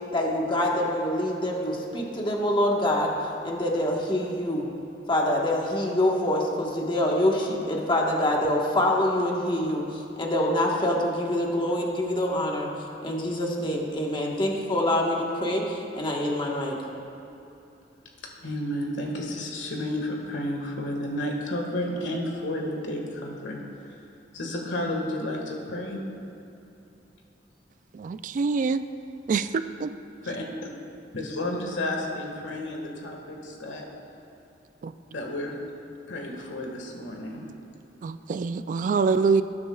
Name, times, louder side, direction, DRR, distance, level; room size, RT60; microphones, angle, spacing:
voice 1, 0.1-3.1 3.4-4.7 5.1-12.7 13.0-16.8, left 1 dB, 25° left, -2 dB, 1.3 m, -25 dB
voice 2, 18.4-23.6 24.3-26.0 30.2-30.7 31.1-33.8 35.1-35.5 36.1-37.4, left 1 dB, 75° left, 0 dB, 1.7 m, -31 dB
voice 3, 27.9-28.8 29.3-29.9 34.8-34.9 38.0-39.4, right 5 dB, 45° right, 11 dB, 0.3 m, -25 dB
19.5 x 9.5 x 2.4 m, 2.9 s
head